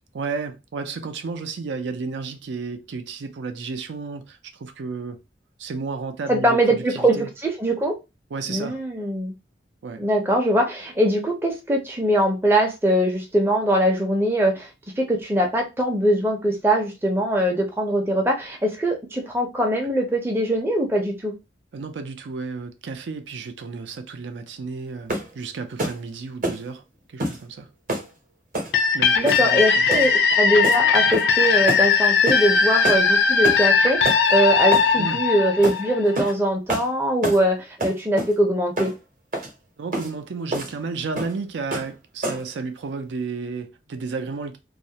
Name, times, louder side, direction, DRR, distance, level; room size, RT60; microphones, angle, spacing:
voice 1, 0.1-5.2 5.6-7.3 8.3-8.8 9.8-10.1 21.7-26.8 27.1-27.7 28.9-30.1 35.0-35.3 39.8-44.6, right 4 dB, 80° right, 0.4 m, -32 dB
voice 2, 6.3-7.9 8.5-9.3 10.0-14.7 15.0-21.3 29.1-38.9, right 1 dB, 15° right, 0.5 m, -22 dB
sound 1, 25.1-25.3 25.8-26.0 26.4-26.6 27.2-27.4 27.9-28.1 28.5-28.7 29.2-29.6 29.9-30.1 30.6-30.8 31.1-31.4 31.7-31.9 32.3-32.4 32.8-33.0 33.4-33.7 34.0-34.2 34.7-34.9 35.6-35.8 36.1-36.4 36.7-36.9 37.2-37.4 37.8-38.3 38.8-38.9 39.3-39.5 39.9-40.1 40.5-40.7 41.2-41.4 41.7-41.9 42.2-42.5, right 1 dB, 45° right, 0.7 m, -27 dB
sound 2, 28.7-36.3, left 5 dB, 70° left, 0.5 m, -19 dB
2.4 x 2.0 x 2.7 m
head